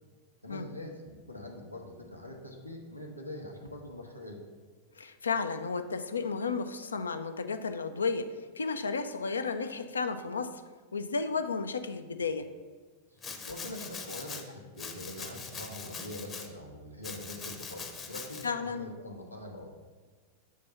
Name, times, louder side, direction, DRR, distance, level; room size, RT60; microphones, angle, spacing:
voice 1, 0.4-4.4 12.2-12.3 13.1-13.2 13.5-19.7, left 1 dB, 90° left, 0 dB, 0.9 m, -43 dB
voice 2, 5.0-8.3 8.6-10.5 10.9-12.5 18.4-18.9, left 4 dB, 75° left, 9 dB, 0.4 m, -33 dB
Domestic sounds home sounds, 13.2-14.4 14.8-16.5 17.0-18.5, left 5 dB, 25° left, 0.7 m, -42 dB
7.5 x 3.4 x 5.5 m, 1.4 s
figure-of-eight pair, 90°, 0 cm